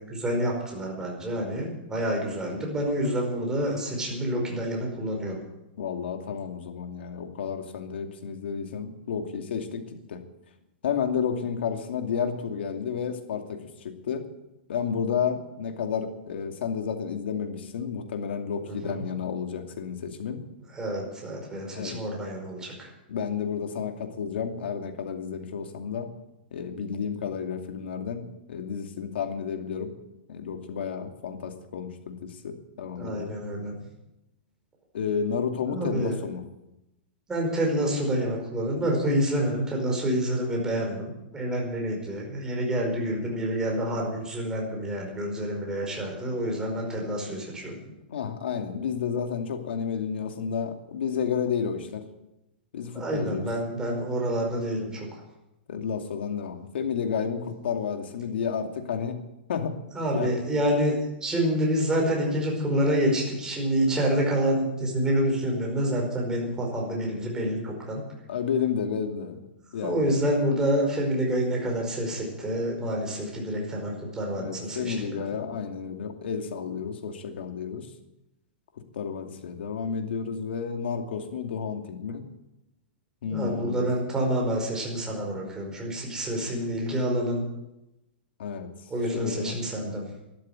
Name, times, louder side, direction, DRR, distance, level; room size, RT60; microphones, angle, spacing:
voice 1, 0.0-5.4 18.7-19.0 20.7-22.9 33.0-33.7 35.7-36.1 37.3-47.8 52.9-55.1 59.9-68.0 69.8-75.2 83.3-87.4 88.9-90.0, equal, 10° right, -1 dB, 4.9 m, -28 dB
voice 2, 5.8-9.8 10.1-10.2 10.8-13.6 14.1-14.2 14.7-20.4 21.7-22.0 23.1-26.1 26.5-29.9 30.3-33.4 34.9-36.4 48.1-52.0 52.7-53.5 55.7-59.2 59.5-59.8 60.1-60.3 68.3-69.4 69.7-70.1 74.4-77.9 78.9-82.2 83.2-83.8 88.4-88.7 89.1-89.6, left 7 dB, 75° left, 5 dB, 2.5 m, -31 dB
12.5 x 11.5 x 9.0 m, 0.92 s
hypercardioid pair, 150°, 6 cm